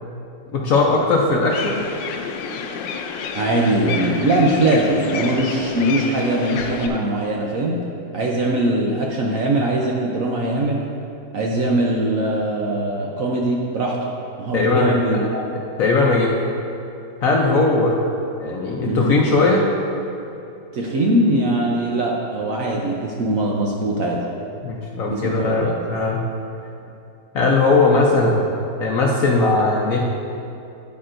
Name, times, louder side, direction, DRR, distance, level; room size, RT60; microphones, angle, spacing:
voice 1, 0.5-1.8 14.5-15.0 15.5-16.3 17.2-18.0 18.4-19.7 24.6-26.2 27.3-28.5 28.8-30.0, left 3 dB, 60° left, -1 dB, 1.0 m, -18 dB
sound 1, 1.5-6.9, left 6 dB, 85° left, 1.3 m, -29 dB
voice 2, 3.3-7.8 8.1-10.8 11.3-14.0 14.4-15.4 18.9-19.1 20.7-24.2 25.1-25.7, right 1 dB, 60° right, -2 dB, 0.9 m, -21 dB
9.5 x 8.5 x 2.6 m, 2.7 s
omnidirectional pair, 2.0 m